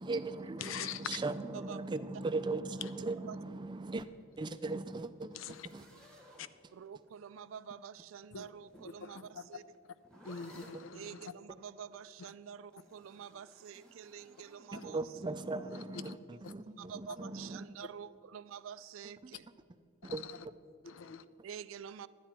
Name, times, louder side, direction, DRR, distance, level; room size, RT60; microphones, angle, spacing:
voice 1, 0.0-4.1 4.4-5.4 5.7-5.9 14.7-17.7 19.2-19.3 20.0-20.2, right 3 dB, 25° right, 0.4 m, -38 dB
voice 2, 0.6-1.2 5.3-5.7 6.4-6.5 8.3-8.5 9.0-9.4 10.2-11.3 12.2-12.3 14.7-14.8 15.7-16.1 16.4-16.5 20.0-20.5 20.8-21.2, left 7 dB, 80° left, 0.4 m, -44 dB
voice 3, 1.5-1.9 3.3-3.4 6.7-9.6 10.9-15.2 16.8-19.5 21.4-22.1, right 7 dB, 90° right, 0.4 m, -48 dB
sound 1, 5.3-7.1 8.3-11.0 12.7-15.0, equal, 5° left, 1.4 m, -59 dB
12.0 x 9.1 x 4.4 m
head